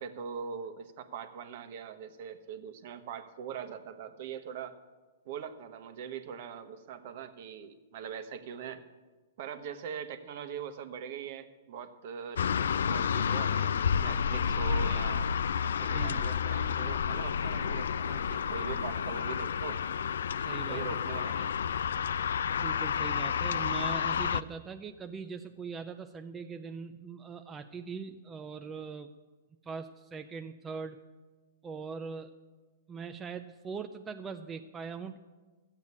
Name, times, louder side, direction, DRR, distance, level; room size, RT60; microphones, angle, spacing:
voice 1, 0.0-4.8 5.2-8.8 9.4-15.3 15.6-19.8 20.7-21.5, right 7 dB, 50° right, 10 dB, 1.1 m, -42 dB
sound 1, 12.4-24.4, left 7 dB, 85° left, 0.4 m, -30 dB
voice 2, 15.9-16.2 20.4-20.8 22.5-29.1 29.6-31.0 31.6-32.3 32.9-35.2, right 5 dB, 15° right, 6 dB, 0.4 m, -41 dB
14.0 x 8.2 x 8.4 m, 1.3 s
hypercardioid pair, 155°, 0 cm